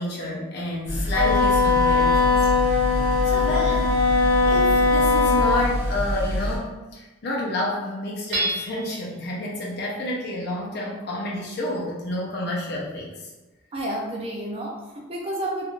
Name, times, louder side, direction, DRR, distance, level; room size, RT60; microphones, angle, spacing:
voice 1, 0.0-2.5 3.2-3.9 4.4-13.1, left 1 dB, 55° left, -4 dB, 0.5 m, -29 dB
sound 1, 0.9-6.6, equal, 10° right, 0.8 m, -27 dB
Wind instrument woodwind instrument, 1.1-5.6, left 4 dB, 20° left, 0.7 m, -20 dB
Hammer / Chink clink, 8.3-9.1, right 1 dB, 65° right, 0.9 m, -27 dB
voice 2, 13.7-15.7, right 1 dB, 30° right, -2 dB, 0.4 m, -30 dB
3.1 x 2.4 x 2.4 m, 1.1 s
head